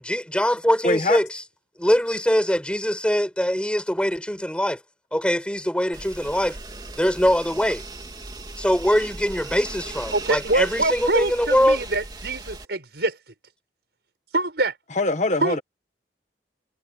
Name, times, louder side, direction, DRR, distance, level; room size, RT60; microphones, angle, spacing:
voice 1, 0.0-1.3 1.8-4.8 5.1-6.6 6.9-7.8 8.6-11.8, equal, 5° left, 6.9 m, -22 dB
voice 2, 0.8-1.2 14.9-15.6, left 2 dB, 40° left, 1.6 m, -23 dB
sound 1, 5.9-12.6, right 2 dB, 25° right, 3.4 m, -38 dB
voice 3, 10.1-13.2 14.3-14.7 15.4-15.6, right 2 dB, 70° right, 5.4 m, -24 dB
head